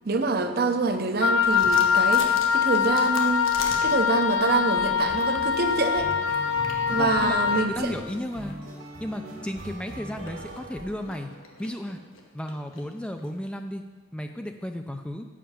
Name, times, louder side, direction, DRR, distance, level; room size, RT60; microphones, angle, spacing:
voice 1, 0.0-3.5 3.8-6.1 6.9-7.9, right 3 dB, 50° right, 7 dB, 0.7 m, -26 dB
Wind instrument woodwind instrument, 1.2-7.7, left 7 dB, 70° left, 0.5 m, -23 dB
sound 1, 1.5-4.4 4.9-13.5, left 3 dB, 85° left, 1.2 m, -43 dB
sound 2, 3.6-3.9 4.5-11.6, right 1 dB, 90° right, 1.7 m, -41 dB
voice 2, 6.9-8.6 9.0-11.3 11.6-12.0 12.3-13.8 14.1-15.3, left 1 dB, 5° left, 5 dB, 0.3 m, -34 dB
7.4 x 5.7 x 7.0 m, 1.3 s
head